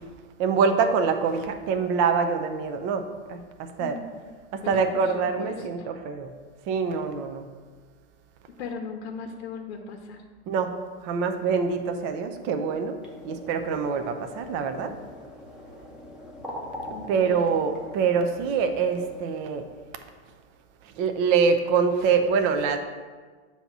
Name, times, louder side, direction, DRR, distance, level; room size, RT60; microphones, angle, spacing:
voice 1, 0.4-4.0 4.5-6.3 6.7-7.4 10.5-10.7 11.0-12.9 13.2-14.9 17.1-19.6 21.0-22.8, right 5 dB, 35° right, 7 dB, 0.5 m, -25 dB
voice 2, 4.6-5.9 8.6-10.2 16.9-17.4, left 4 dB, 75° left, 2 dB, 0.8 m, -38 dB
sound 1, 13.0-19.2, left 1 dB, ahead, 0.8 m, -42 dB
7.4 x 2.8 x 5.8 m, 1.4 s
supercardioid pair, 150°, 33 cm